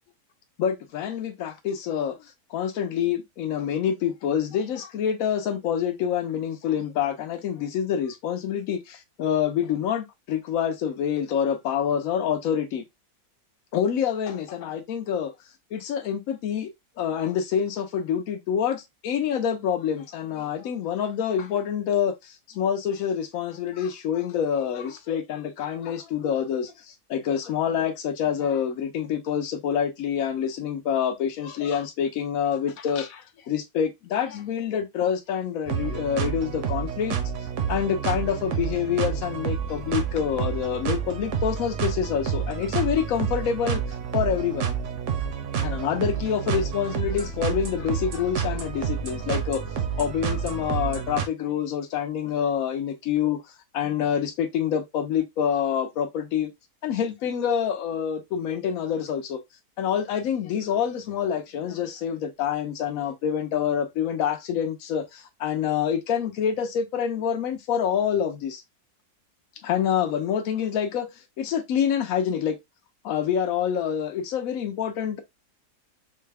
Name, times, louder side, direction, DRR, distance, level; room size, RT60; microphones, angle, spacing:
voice 1, 0.6-12.8 13.7-15.3 15.7-16.7 17.0-37.2 37.7-43.8 44.1-44.7 45.6-53.4 53.7-56.5 56.8-59.4 59.8-68.6 69.6-71.1 71.4-72.6 73.0-75.2, left 8 dB, 65° left, 1.1 m, -27 dB
sound 1, 35.7-51.3, right 7 dB, 60° right, 0.9 m, -29 dB
3.9 x 2.2 x 3.3 m
omnidirectional pair, 1.6 m